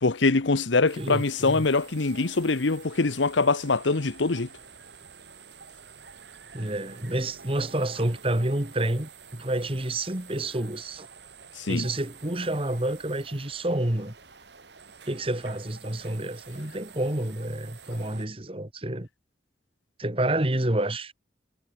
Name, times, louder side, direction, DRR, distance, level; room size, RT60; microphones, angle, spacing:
voice 1, 0.0-4.5 11.6-11.9, left 3 dB, 80° left, 1.0 m, -23 dB
sound 1, 0.9-18.3, right 6 dB, 65° right, 3.1 m, -48 dB
voice 2, 1.0-1.7 6.5-11.1 11.7-14.1 15.1-19.1 20.0-21.1, right 1 dB, 30° right, 1.8 m, -29 dB
head